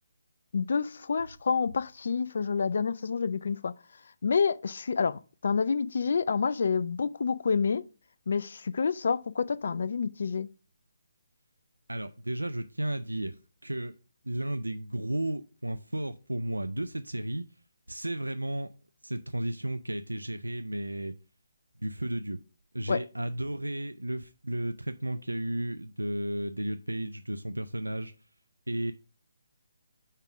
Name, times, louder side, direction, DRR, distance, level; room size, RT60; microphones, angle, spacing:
voice 1, 0.5-3.7 4.2-7.8 8.3-10.5 22.9-23.0, left 5 dB, 55° left, 0.4 m, -28 dB
voice 2, 11.9-13.4 13.6-13.9 14.2-17.4 17.9-18.7 19.0-21.2 21.8-22.4 22.7-28.1 28.7-28.9, right 1 dB, 85° right, 0.4 m, -33 dB
5.4 x 3.7 x 5.9 m
figure-of-eight pair, 145°, 0 cm